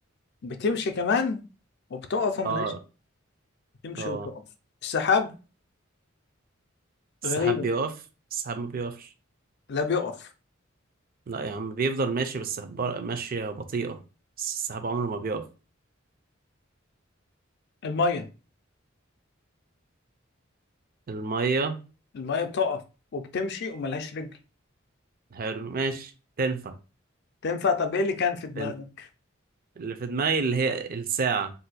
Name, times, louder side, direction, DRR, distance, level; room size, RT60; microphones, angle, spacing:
voice 1, 0.4-1.4 1.9-2.7 3.8-4.4 4.8-5.3 7.2-7.7 9.7-10.3 17.8-18.3 22.1-22.8 23.1-24.3 27.4-28.9, left 5 dB, 55° left, 0.4 m, -27 dB
voice 2, 2.4-2.8 4.0-4.3 7.2-7.9 8.3-9.1 11.3-14.0 14.4-15.4 21.1-21.8 25.3-26.1 26.4-26.7 28.6-28.7 29.8-31.5, right 4 dB, 45° right, 0.5 m, -29 dB
2.6 x 2.2 x 4.0 m
head